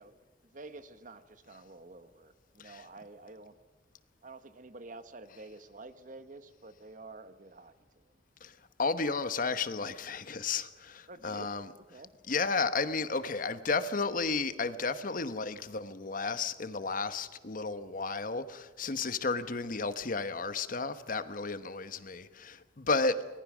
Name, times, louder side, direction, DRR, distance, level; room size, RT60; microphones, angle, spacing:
voice 1, 0.0-3.5 4.2-8.1 11.1-12.1, right 2 dB, 50° right, 1.2 m, -50 dB
voice 2, 8.8-11.6 12.3-23.2, left 4 dB, 50° left, 1.0 m, -33 dB
24.0 x 19.0 x 6.2 m
head